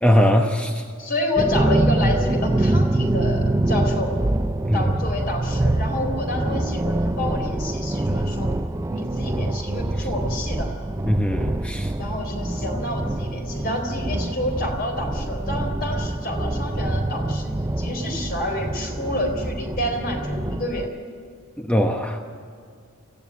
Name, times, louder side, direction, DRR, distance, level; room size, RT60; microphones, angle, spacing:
voice 1, 0.0-0.8 4.7-4.8 11.1-11.9 21.6-22.2, equal, 5° left, 3 dB, 1.0 m, -20 dB
voice 2, 1.0-4.1 4.7-8.5 8.9-10.7 12.0-20.9, left 1 dB, 45° left, 3 dB, 4.1 m, -29 dB
sound 1, 1.4-20.9, right 1 dB, 15° right, 0.5 m, -25 dB
24.5 x 15.5 x 9.5 m, 2.3 s
head